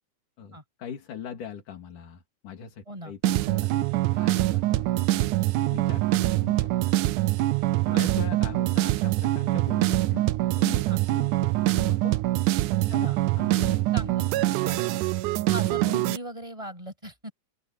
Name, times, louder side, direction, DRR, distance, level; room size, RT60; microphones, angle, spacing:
voice 1, 0.4-6.7 7.0-7.1 7.8-10.3 10.6-12.2 12.7-13.1 13.4-13.9, left 8 dB, 90° left, 4.2 m, -41 dB
sound 1, 3.2-16.2, right 17 dB, 85° right, 2.2 m, -24 dB
voice 2, 13.9-14.4 14.6-15.0 15.5-17.3, equal, 10° right, 7.2 m, -38 dB
open air
omnidirectional pair, 3.5 m